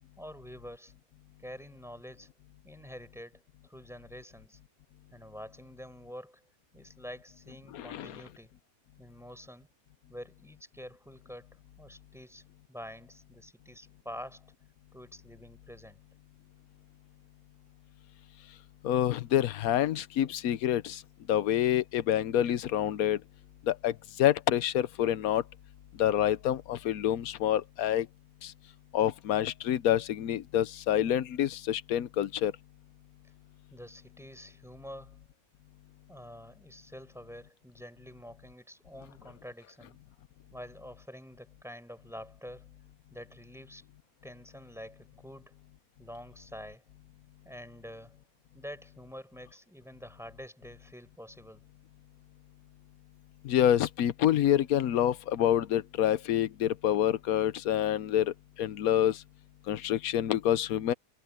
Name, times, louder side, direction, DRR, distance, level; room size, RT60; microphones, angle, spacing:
voice 1, 0.2-0.9 1.4-2.3 2.6-4.6 5.1-6.4 6.7-8.5 9.0-9.7 10.1-11.5 11.8-12.4 12.7-14.5 14.9-16.0 33.7-35.2 36.1-40.0 40.5-42.7 43.1-43.9 44.2-45.6 46.0-46.8 47.4-48.2 48.5-51.6, equal, ahead, 7.3 m, -47 dB
voice 2, 7.7-8.2 18.8-21.0 21.3-23.2 23.7-25.4 26.0-28.1 28.4-28.5 28.9-32.5 53.4-59.2 59.7-60.9, left 11 dB, 70° left, 1.2 m, -27 dB
omnidirectional pair, 1.7 m